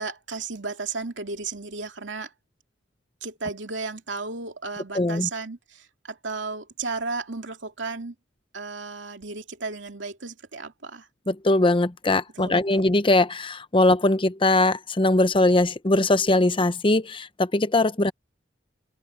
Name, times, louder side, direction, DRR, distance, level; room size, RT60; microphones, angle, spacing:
voice 1, 0.0-2.3 3.2-8.1 8.5-11.1 12.4-12.8, right 4 dB, 90° right, 2.5 m, -34 dB
voice 2, 4.9-5.3 11.3-18.1, left 2 dB, 30° left, 0.8 m, -21 dB
open air
head